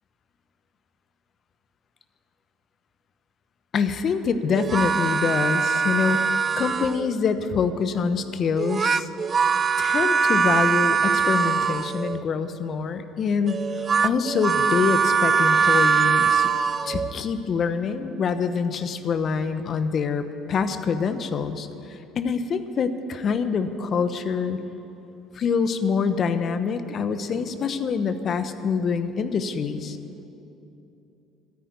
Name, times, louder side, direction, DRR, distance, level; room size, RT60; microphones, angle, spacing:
voice 1, 3.7-6.3 6.6-9.1 9.8-16.5 16.9-24.6 25.3-30.0, left 5 dB, 50° left, 10 dB, 1.0 m, -25 dB
sound 1, 4.6-7.1 8.6-12.2 13.5-17.1, right 6 dB, 35° right, 0.4 m, -22 dB
13.5 x 9.7 x 9.5 m, 2.9 s
hypercardioid pair, 65°, 0 cm